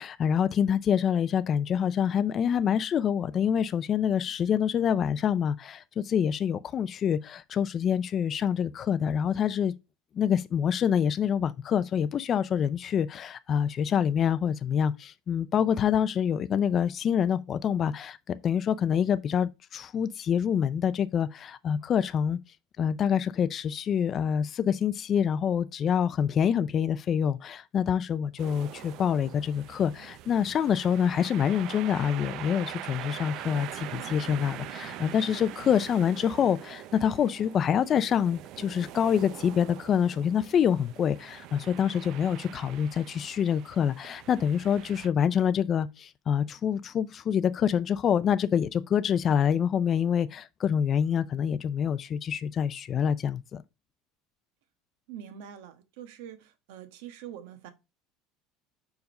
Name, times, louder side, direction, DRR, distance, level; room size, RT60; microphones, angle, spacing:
voice 1, 0.0-9.7 10.1-22.4 22.8-53.6, left 8 dB, 35° left, 0.4 m, -26 dB
sound 1, 28.4-45.1, right 13 dB, 55° right, 0.5 m, -43 dB
voice 2, 55.1-57.7, right 10 dB, 85° right, 1.3 m, -44 dB
5.2 x 4.7 x 5.3 m
cardioid pair, 140°, 0 cm